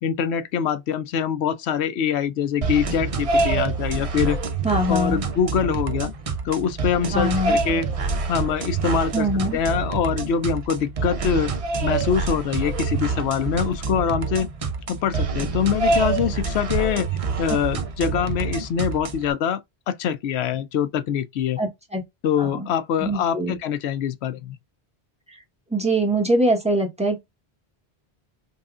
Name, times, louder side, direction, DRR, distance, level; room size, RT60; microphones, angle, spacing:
voice 1, 0.0-4.4 4.9-6.1 6.4-7.9 8.3-9.3 9.5-11.5 11.8-14.5 14.9-17.1 17.4-21.6 22.2-24.6, left 8 dB, 80° left, 0.8 m, -24 dB
sound 1, 2.6-19.3, right 4 dB, 45° right, 0.5 m, -26 dB
voice 2, 4.6-5.2 7.1-7.6 9.1-9.6 17.5-17.6 21.6-22.0 22.4-22.7 23.0-23.6 25.3-25.4 25.7-27.2, right 1 dB, 5° right, 1.1 m, -23 dB
5.4 x 2.4 x 2.4 m
omnidirectional pair, 1.1 m